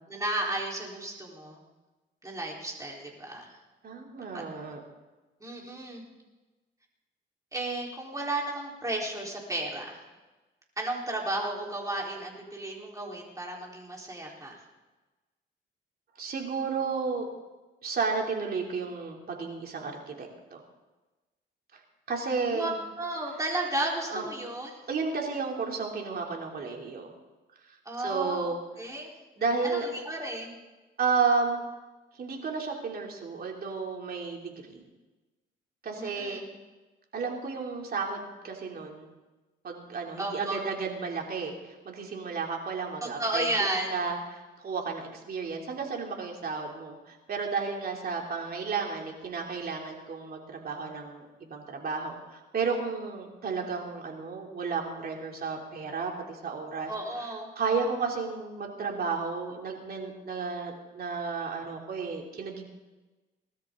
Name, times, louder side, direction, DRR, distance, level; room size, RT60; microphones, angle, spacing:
voice 1, 0.1-1.6 2.2-3.5 4.3-4.4 5.4-6.0 7.5-10.0 10.8-14.6 22.5-24.8 27.9-29.1 29.6-30.5 35.9-36.4 40.2-40.6 43.0-44.0 56.9-57.5, right 1 dB, 15° right, -2 dB, 4.1 m, -33 dB
voice 2, 3.8-4.8 16.1-17.3 17.8-20.6 21.7-21.8 22.1-22.7 24.1-24.2 24.9-27.1 28.0-28.6 29.4-29.9 31.0-31.6 32.2-34.8 35.8-36.4 37.1-39.1 39.6-41.5 41.8-43.5 43.9-56.9 57.6-62.7, right 4 dB, 50° right, 0 dB, 3.1 m, -32 dB
19.5 x 13.0 x 3.8 m, 1.2 s
cardioid pair, 90°, 20 cm